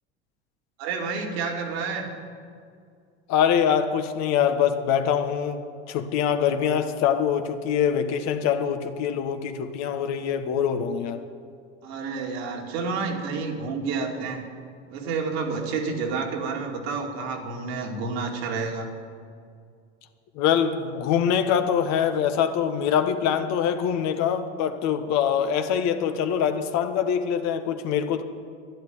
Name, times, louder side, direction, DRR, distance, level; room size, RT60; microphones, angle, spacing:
voice 1, 0.8-2.1 11.8-14.5 14.9-18.9, right 4 dB, 70° right, 1 dB, 2.6 m, -29 dB
voice 2, 3.3-5.6 5.9-11.2 20.3-28.2, left 8 dB, 55° left, 8 dB, 1.4 m, -24 dB
12.0 x 11.0 x 9.4 m, 2.2 s
hypercardioid pair, 80°, 32 cm